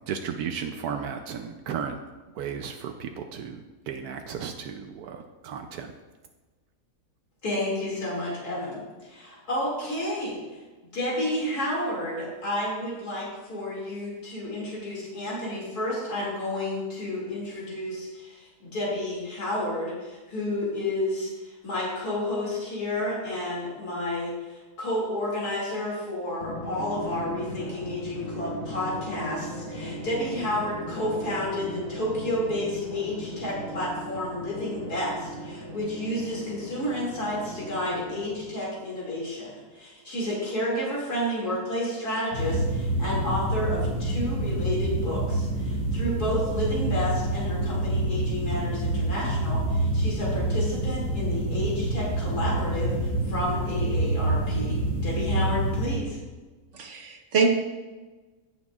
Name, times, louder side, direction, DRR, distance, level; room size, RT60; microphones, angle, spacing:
voice 1, 0.0-2.0 2.4-5.9, right 7 dB, 85° right, 5 dB, 1.1 m, -34 dB
voice 2, 7.4-10.4 10.9-56.2, left 1 dB, 80° left, -5 dB, 2.9 m, -31 dB
Drum, 26.4-38.8, equal, 60° left, 2.8 m, -38 dB
sound 1, 42.3-56.0, right 1 dB, 40° left, 3.3 m, -27 dB
voice 3, 56.7-57.5, right 4 dB, 55° right, 2 dB, 1.4 m, -24 dB
17.0 x 6.1 x 2.4 m, 1.2 s
omnidirectional pair, 1.6 m